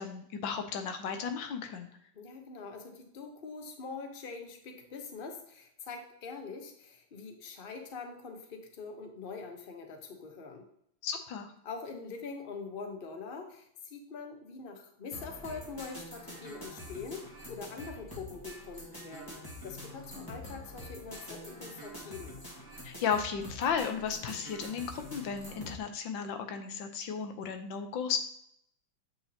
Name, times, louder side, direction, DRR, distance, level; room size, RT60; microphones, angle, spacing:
voice 1, 0.0-1.9 11.0-11.5 22.8-28.2, left 6 dB, 70° left, 6 dB, 1.5 m, -34 dB
voice 2, 2.2-10.7 11.6-22.4, left 4 dB, 40° left, 4 dB, 0.9 m, -44 dB
sound 1, 15.1-25.8, equal, 10° left, 1.6 m, -46 dB
8.0 x 6.2 x 2.8 m, 0.73 s
omnidirectional pair, 2.2 m